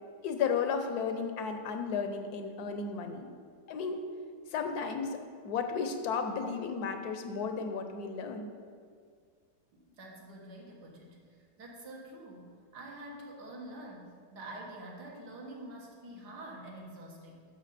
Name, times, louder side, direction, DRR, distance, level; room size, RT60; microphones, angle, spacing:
voice 1, 0.2-3.3 3.7-4.0 4.5-8.5, left 5 dB, 65° left, 7 dB, 1.2 m, -34 dB
voice 2, 9.7-17.4, right 1 dB, 70° right, -1 dB, 2.0 m, -47 dB
10.5 x 6.5 x 4.2 m, 2.1 s
omnidirectional pair, 1.9 m